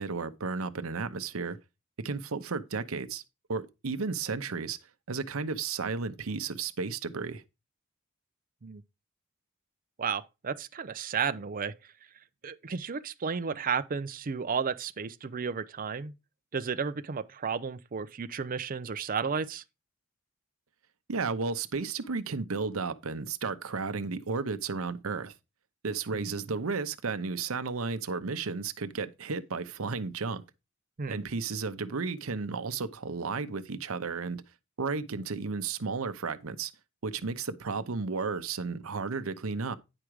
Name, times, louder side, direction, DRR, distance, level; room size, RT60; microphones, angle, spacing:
voice 1, 0.0-1.6 2.0-3.2 3.5-4.8 5.1-7.4 21.1-25.3 25.8-30.4 31.1-34.4 34.8-36.7 37.0-39.7, right 4 dB, 80° right, 0.8 m, -33 dB
voice 2, 10.0-11.7 12.4-16.1 16.5-19.6 26.1-26.3 31.0-31.2, right 6 dB, 40° right, 0.5 m, -33 dB
9.8 x 5.0 x 4.7 m
head